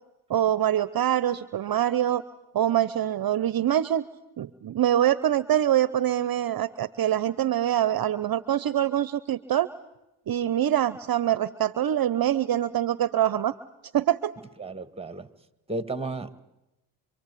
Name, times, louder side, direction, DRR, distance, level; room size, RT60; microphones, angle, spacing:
voice 1, 0.3-2.2 2.5-4.1 4.4-9.7 10.3-13.5 13.9-14.3, right 11 dB, 45° right, 16 dB, 0.9 m, -24 dB
voice 2, 14.6-15.3 15.7-16.4, right 2 dB, 10° right, 12 dB, 1.9 m, -33 dB
26.5 x 24.0 x 8.4 m, 0.92 s
supercardioid pair, 65°, 47 cm